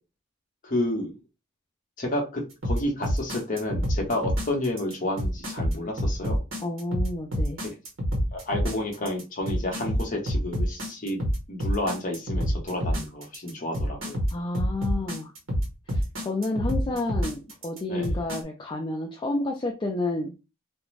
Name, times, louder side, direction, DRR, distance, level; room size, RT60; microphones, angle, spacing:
voice 1, 0.6-1.1 2.0-6.4 7.6-7.7 8.3-14.2 17.9-18.2, left 1 dB, 40° left, 0 dB, 0.8 m, -30 dB
sound 1, 2.6-18.4, equal, 65° right, 1.1 m, -27 dB
voice 2, 6.6-7.6 14.3-15.3 15.9-20.3, left 2 dB, 25° left, 1 dB, 0.3 m, -30 dB
2.4 x 2.1 x 3.1 m, 0.29 s
head